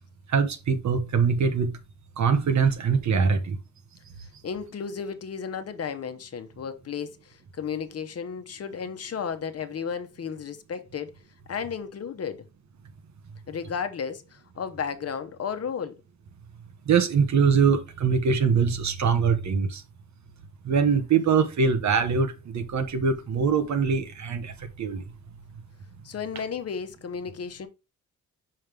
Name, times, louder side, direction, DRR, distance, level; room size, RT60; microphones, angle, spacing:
voice 1, 0.3-1.7 2.2-3.6 16.9-19.8 20.6-24.5 24.8-25.0, right 6 dB, 65° right, 1.2 m, -23 dB
voice 2, 4.4-11.2 11.5-12.4 13.5-15.9 26.0-27.7, left 6 dB, 55° left, 1.0 m, -33 dB
5.7 x 5.3 x 3.3 m
cardioid pair, 95°, 30 cm